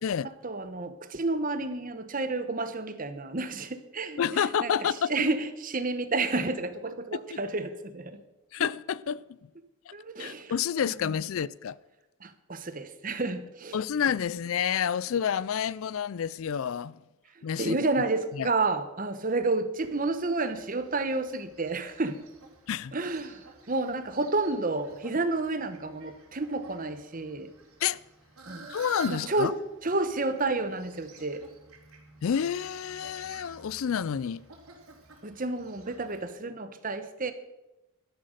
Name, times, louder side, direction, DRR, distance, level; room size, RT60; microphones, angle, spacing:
voice 1, 0.2-8.2 9.9-10.5 11.0-11.1 12.2-13.8 17.3-22.2 22.9-27.5 28.5-28.7 29.1-29.5 29.8-31.4 35.2-37.3, right 3 dB, 40° right, 1.0 m, -30 dB
voice 2, 4.2-5.3 8.5-9.4 9.9-10.0 10.2-11.8 13.7-17.0 17.4-17.8 18.4-18.5 22.7-22.9 27.8-28.0 28.7-29.5 32.2-34.4, left 8 dB, 65° left, 0.4 m, -29 dB
Fowl, 19.8-36.2, right 4 dB, 80° right, 3.4 m, -51 dB
12.5 x 10.5 x 6.5 m
head